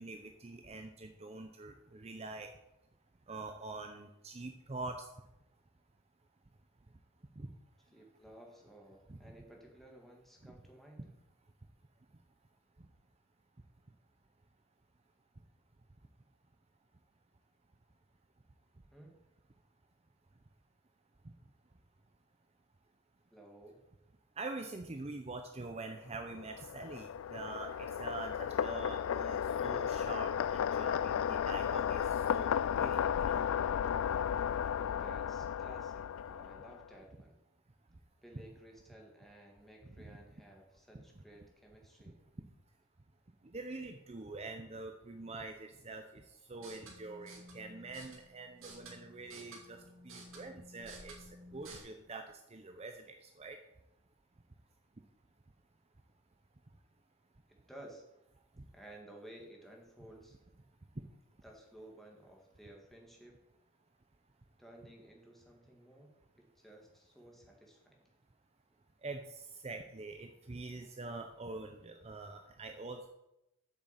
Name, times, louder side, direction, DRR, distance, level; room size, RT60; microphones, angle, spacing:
voice 1, 0.0-2.5 3.3-5.1 7.4-7.5 9.1-9.2 24.4-33.4 40.0-40.2 43.5-46.2 46.5-49.8 50.0-51.2 51.5-52.2 52.5-53.6 58.6-58.7 69.0-73.1, right 3 dB, 30° right, 5 dB, 0.6 m, -45 dB
voice 2, 7.9-11.0 18.9-19.1 23.3-23.8 34.7-37.4 38.2-42.2 57.5-58.0 58.7-60.4 61.4-63.4 64.6-66.1 66.4-68.1, right 1 dB, ahead, 0 dB, 1.9 m, -55 dB
sound 1, 26.2-36.9, left 8 dB, 65° left, 0.3 m, -34 dB
sound 2, 46.5-51.8, right 2 dB, 60° right, 2.5 m, -53 dB
8.3 x 6.2 x 7.4 m, 0.89 s
head